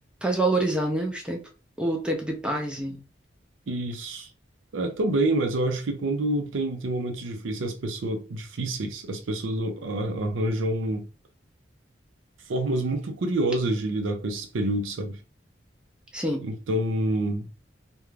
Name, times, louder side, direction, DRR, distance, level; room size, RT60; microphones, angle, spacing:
voice 1, 0.2-1.4 1.8-3.0 16.1-16.4, right 2 dB, 5° right, 0.4 m, -26 dB
voice 2, 3.7-4.3 4.7-11.1 12.5-15.2 16.4-17.5, right 1 dB, 90° right, 0.5 m, -27 dB
2.4 x 2.2 x 3.1 m
head